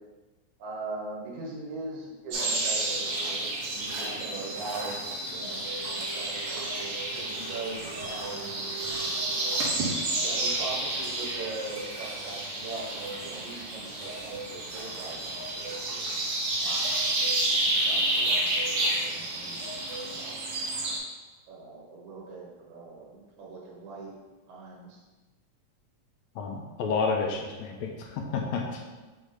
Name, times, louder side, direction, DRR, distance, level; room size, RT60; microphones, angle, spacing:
voice 1, 0.6-8.7 10.2-16.1 16.6-16.9 17.6-20.4 21.5-24.1 24.5-25.0 28.9-29.1, right 3 dB, 75° right, -3 dB, 2.6 m, -41 dB
sound 1, 2.3-21.0, right 2 dB, 60° right, 1.9 m, -30 dB
voice 2, 26.4-28.8, left 4 dB, 75° left, 1 dB, 2.0 m, -30 dB
6.5 x 3.8 x 5.1 m, 1.2 s
omnidirectional pair, 3.4 m